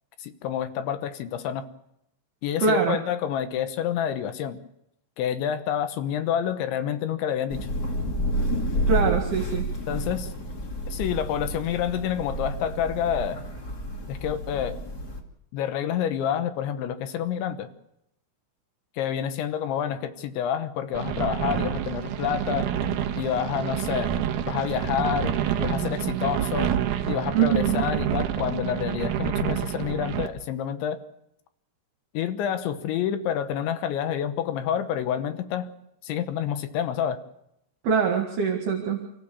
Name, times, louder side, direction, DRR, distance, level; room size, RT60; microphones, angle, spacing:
voice 1, 0.2-1.6 2.4-4.6 5.2-7.7 9.9-10.3 10.9-13.4 14.1-14.8 15.5-17.7 19.0-22.7 23.2-24.1 24.5-25.3 25.6-26.7 27.1-31.0 32.1-35.7 36.0-37.2, left 9 dB, 75° left, 10 dB, 3.2 m, -28 dB
voice 2, 2.6-3.0 8.9-9.7 27.3-27.8 37.8-39.1, right 6 dB, 60° right, 3 dB, 3.5 m, -23 dB
Thunder / Rain, 7.5-15.2, right 1 dB, 35° left, 1.7 m, -30 dB
sound 1, 20.9-30.3, right 9 dB, 85° right, 1.8 m, -28 dB
29.5 x 15.5 x 7.1 m, 0.81 s
omnidirectional pair, 5.7 m